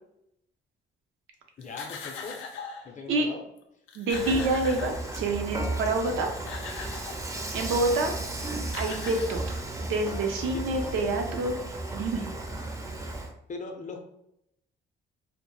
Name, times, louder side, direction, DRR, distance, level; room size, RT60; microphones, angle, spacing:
sound 1, 1.6-2.9 3.6-3.7 3.9-5.4 6.1-7.3 8.3-8.4 8.6-9.9, left 5 dB, 90° left, 0.4 m, -41 dB
voice 1, 1.6-2.4 2.8-3.4 10.4-10.9 13.5-14.1, left 4 dB, 40° left, 3 dB, 0.5 m, -40 dB
voice 2, 4.0-6.3 7.5-8.1 8.7-11.5 11.9-12.2, right 2 dB, 85° right, 3 dB, 0.5 m, -27 dB
Dishes pots and pans / Frying (food), 4.1-13.3, right 2 dB, 15° right, 0.4 m, -34 dB
2.1 x 2.0 x 3.0 m, 0.78 s
cardioid pair, 90°, 20 cm